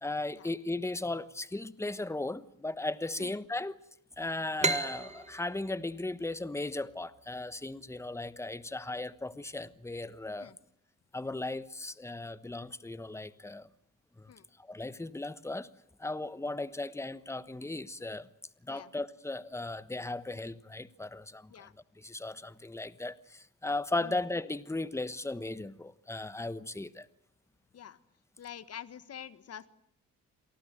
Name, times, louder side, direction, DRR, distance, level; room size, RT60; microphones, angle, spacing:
voice 1, 0.0-3.8 4.2-10.5 11.1-13.7 14.2-14.3 14.6-15.7 16.0-18.3 18.6-21.7 22.0-27.1, left 2 dB, 10° left, 15 dB, 1.2 m, -36 dB
sound 1, 4.6-8.0, right 3 dB, 20° right, 1.8 m, -35 dB
voice 2, 28.4-29.7, left 9 dB, 55° left, 15 dB, 1.6 m, -47 dB
27.5 x 19.0 x 9.1 m, 0.69 s
cardioid pair, 90°, 30 cm